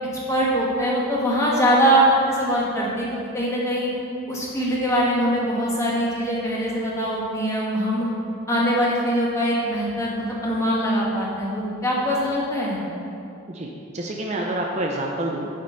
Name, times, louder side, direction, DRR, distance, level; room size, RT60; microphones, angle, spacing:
voice 1, 0.3-3.9 4.3-8.1 8.5-12.8, equal, 15° left, -5 dB, 1.4 m, -22 dB
voice 2, 13.5-15.5, right 1 dB, 35° right, 0 dB, 0.5 m, -28 dB
9.6 x 5.2 x 3.9 m, 2.7 s
head